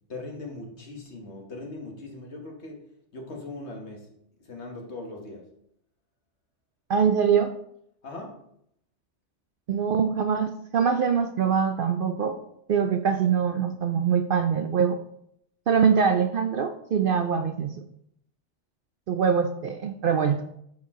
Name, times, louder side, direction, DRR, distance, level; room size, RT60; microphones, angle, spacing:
voice 1, 0.1-5.5 8.0-8.5, left 2 dB, 65° left, 1.7 m, -40 dB
voice 2, 6.9-7.5 9.7-12.4 12.7-15.0 15.7-17.8 19.1-20.4, right 7 dB, 60° right, 0.6 m, -23 dB
10.5 x 4.4 x 3.6 m
omnidirectional pair, 1.2 m